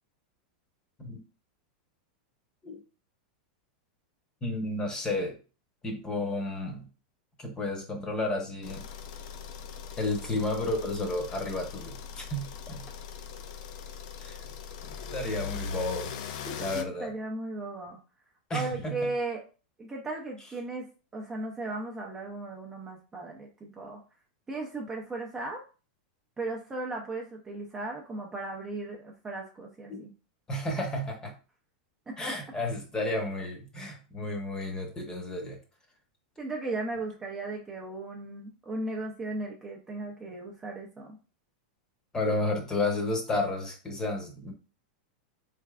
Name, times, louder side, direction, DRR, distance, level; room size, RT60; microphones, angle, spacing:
voice 1, 4.4-5.4 5.8-6.9 7.4-8.8 10.0-12.9 14.2-14.4 14.8-16.1 16.6-17.1 18.5-19.1 29.9-30.0 30.5-31.3 32.2-35.6 42.1-44.5, left 2 dB, 15° left, 3 dB, 1.0 m, -32 dB
sound 1, 8.6-16.8, left 6 dB, 55° left, 0.5 m, -40 dB
voice 2, 16.5-18.0 18.5-19.4 19.8-20.9 21.1-24.0 24.5-25.6 26.4-30.1 32.1-32.2 36.4-41.1, right 2 dB, 15° right, -1 dB, 0.6 m, -36 dB
4.4 x 3.3 x 2.4 m, 0.35 s
supercardioid pair, 150°, 4 cm